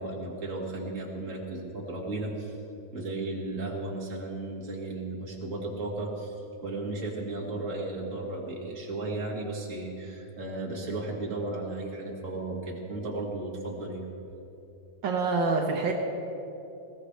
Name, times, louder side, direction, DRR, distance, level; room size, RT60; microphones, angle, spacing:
voice 1, 0.0-2.6 2.9-14.1, right 2 dB, 30° right, -2 dB, 1.8 m, -35 dB
voice 2, 15.0-15.9, right 4 dB, 90° right, 1 dB, 1.0 m, -26 dB
21.5 x 17.5 x 3.3 m, 2.9 s
omnidirectional pair, 3.8 m